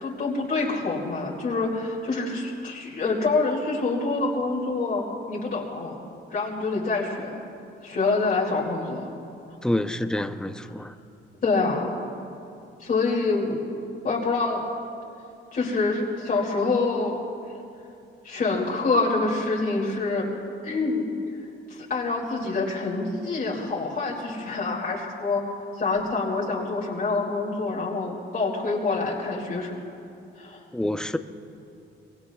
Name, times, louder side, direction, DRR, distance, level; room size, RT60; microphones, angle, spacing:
voice 1, 0.0-6.0 6.3-7.3 7.8-9.0 11.4-12.0 12.8-13.6 14.0-14.6 15.5-17.2 18.2-20.3 20.6-21.1 21.7-25.4 25.7-29.7 30.4-30.6, left 3 dB, 45° left, -4 dB, 2.6 m, -26 dB
voice 2, 9.6-10.9 30.7-31.2, left 1 dB, 5° left, 9 dB, 0.7 m, -27 dB
24.5 x 22.5 x 2.4 m, 2.6 s
cardioid pair, 90°, 20 cm